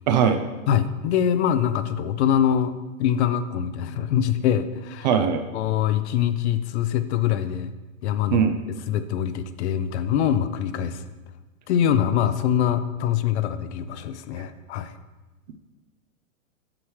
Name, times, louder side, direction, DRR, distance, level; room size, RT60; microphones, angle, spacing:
voice 1, 0.1-0.5 5.0-5.4 8.3-8.5, right 7 dB, 35° right, 7 dB, 0.4 m, -20 dB
voice 2, 0.7-2.7 3.0-5.1 5.5-7.7 8.0-11.1 11.7-15.0, left 9 dB, 55° left, 12 dB, 0.6 m, -24 dB
8.6 x 6.2 x 3.2 m, 1.2 s
hypercardioid pair, 135°, 41 cm